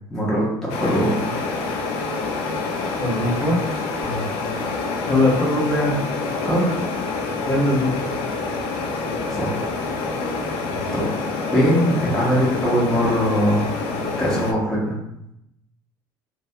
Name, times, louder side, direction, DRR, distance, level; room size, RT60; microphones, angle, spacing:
voice 1, 0.1-1.3 4.0-4.3 6.4-6.6 9.3-9.6 10.9-11.1 11.5-13.7 14.2-15.0, equal, 5° left, -7 dB, 0.7 m, -21 dB
sound 1, 0.7-14.5, left 3 dB, 75° left, 0.4 m, -27 dB
voice 2, 3.0-3.6 5.0-6.0 7.5-8.0 10.6-10.9, left 1 dB, 30° left, -5 dB, 0.8 m, -21 dB
2.2 x 2.2 x 2.7 m, 0.82 s
cardioid pair, 115°, 9 cm